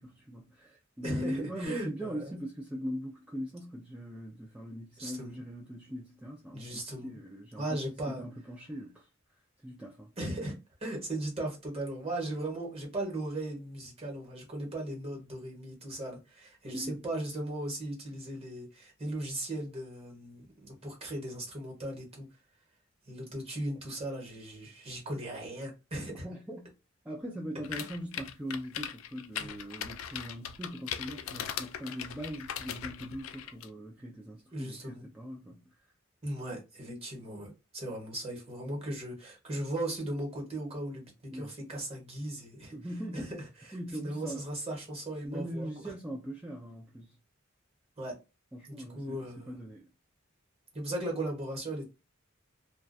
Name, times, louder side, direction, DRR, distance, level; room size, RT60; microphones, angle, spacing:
voice 1, 0.0-7.6 8.1-9.1 9.6-10.1 16.7-17.0 26.2-26.7 27.1-35.6 41.3-41.5 42.7-43.3 43.7-44.4 45.2-47.2 48.5-49.9, equal, 5° right, 0.3 m, -41 dB
voice 2, 1.0-2.2 5.0-5.4 6.5-7.2 7.6-8.2 10.2-10.5 10.8-22.3 23.1-26.3 27.7-27.8 29.4-29.5 34.5-35.1 36.2-42.8 43.1-45.7 48.0-48.1 48.7-49.6 50.7-51.9, right 1 dB, 30° right, 1.0 m, -37 dB
sound 1, 27.6-33.7, left 9 dB, 80° left, 0.3 m, -39 dB
2.4 x 2.2 x 2.5 m
head